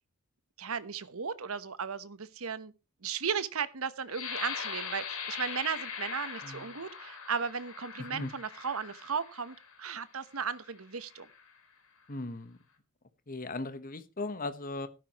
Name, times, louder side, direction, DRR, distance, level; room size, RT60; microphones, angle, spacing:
voice 1, 0.6-2.7 3.0-11.3, right 6 dB, 70° right, 1.0 m, -36 dB
sound 1, 4.1-9.8 10.4-10.6 11.0-11.5, left 6 dB, 80° left, 3.6 m, -41 dB
voice 2, 12.1-12.6 13.3-14.9, left 2 dB, 40° left, 1.1 m, -38 dB
13.5 x 12.0 x 3.0 m
head